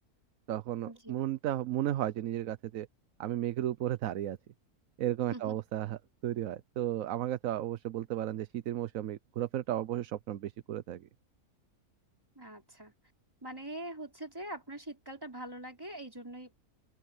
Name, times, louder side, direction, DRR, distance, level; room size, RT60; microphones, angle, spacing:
voice 1, 0.5-2.9 3.2-4.4 5.0-11.1, right 12 dB, 65° right, 1.1 m, -34 dB
voice 2, 12.4-12.9 13.4-16.5, right 1 dB, 15° right, 3.8 m, -43 dB
open air
omnidirectional pair, 1.6 m